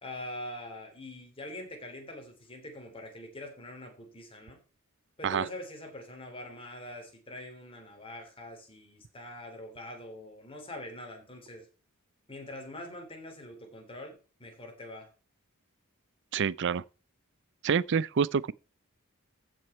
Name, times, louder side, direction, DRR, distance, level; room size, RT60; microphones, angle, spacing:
voice 1, 0.0-4.6 5.2-11.7 12.3-15.1, left 1 dB, 25° left, 3.5 m, -44 dB
voice 2, 16.3-16.8 17.6-18.5, right 6 dB, 55° right, 0.4 m, -27 dB
15.0 x 6.3 x 4.4 m
head